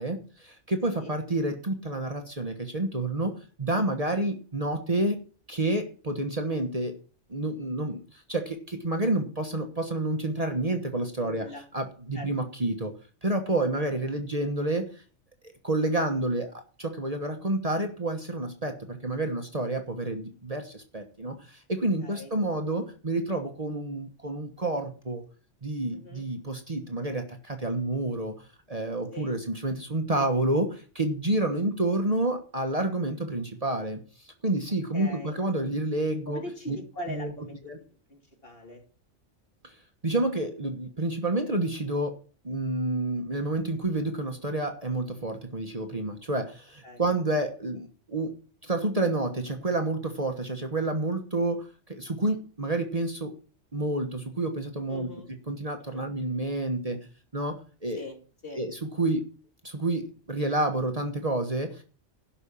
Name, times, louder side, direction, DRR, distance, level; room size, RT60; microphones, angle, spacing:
voice 1, 0.0-3.3 3.6-5.2 5.5-7.0 7.3-11.5 11.7-12.9 13.2-15.0 15.6-16.5 16.8-25.2 25.6-36.4 36.7-36.8 37.1-37.3 37.6-37.8 39.6-39.8 40.0-42.2 42.4-48.4 48.6-53.3 53.7-55.1 55.5-57.0 57.3-58.0 58.5-59.2 59.6-61.8, right 2 dB, 30° right, 5 dB, 1.3 m, -29 dB
voice 2, 11.2-11.6 12.1-12.3 13.7-13.9 22.0-22.3 25.9-26.2 29.1-29.4 34.9-35.4 36.3-37.6 37.9-38.8 46.8-47.0 54.9-55.3 55.9-56.0 57.9-58.2 58.4-58.6, left 1 dB, 50° left, 2 dB, 3.0 m, -41 dB
11.5 x 5.4 x 8.6 m, 0.39 s
omnidirectional pair, 1.3 m